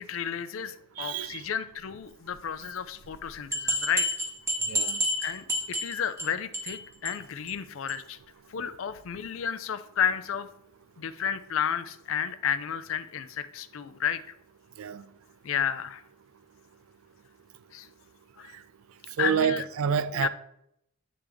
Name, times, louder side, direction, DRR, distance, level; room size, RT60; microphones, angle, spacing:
voice 1, 0.0-4.1 5.2-8.2 8.5-10.5 11.0-14.3 15.4-16.0 17.7-17.9 18.4-18.5 19.2-19.6 20.1-20.3, left 8 dB, 75° left, 0.4 m, -32 dB
voice 2, 1.0-1.4 4.7-5.0 14.8-15.0 19.2-20.3, right 7 dB, 85° right, 0.4 m, -28 dB
sound 1, 3.1-3.2 3.5-6.3 6.5-6.8 7.1-7.2 7.5-7.6 7.9-8.0, equal, 15° right, 0.8 m, -29 dB
8.7 x 3.4 x 3.5 m
head